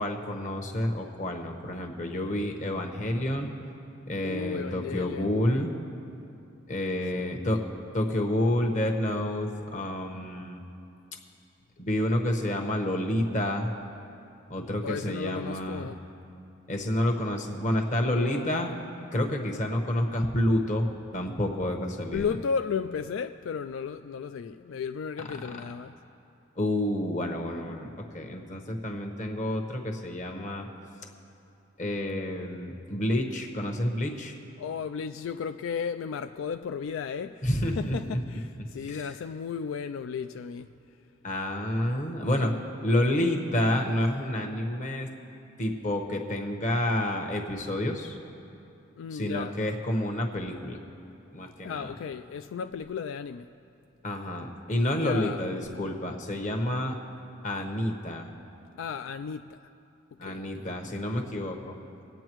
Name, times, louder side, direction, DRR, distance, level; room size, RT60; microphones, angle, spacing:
voice 1, 0.0-3.5 4.0-5.7 6.7-7.6 7.9-10.6 11.8-13.7 14.5-15.9 16.7-18.7 19.1-20.9 21.1-22.3 26.6-30.7 31.8-34.3 37.4-38.2 38.9-39.1 41.2-42.5 42.8-45.1 45.6-48.2 49.1-50.8 51.3-51.9 54.0-57.0 57.4-58.3 60.2-61.8, left 1 dB, 35° left, 1.1 m, -29 dB
voice 2, 4.2-5.3 7.2-7.3 14.8-16.0 18.0-18.5 22.1-25.9 34.6-40.7 49.0-49.6 51.6-53.5 54.9-55.5 58.8-59.6 60.2-60.7, left 6 dB, 80° left, 0.3 m, -34 dB
26.0 x 8.8 x 3.1 m
head